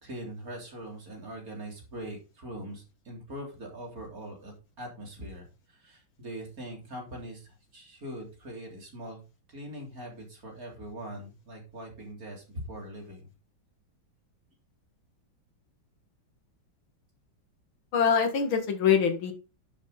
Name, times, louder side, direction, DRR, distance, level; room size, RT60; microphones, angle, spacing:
voice 1, 0.0-9.2 9.5-13.3, right 1 dB, 45° right, 1 dB, 4.0 m, -42 dB
voice 2, 17.9-19.3, left 7 dB, 80° left, 6 dB, 2.7 m, -24 dB
11.0 x 7.3 x 4.1 m, 0.32 s
omnidirectional pair, 2.2 m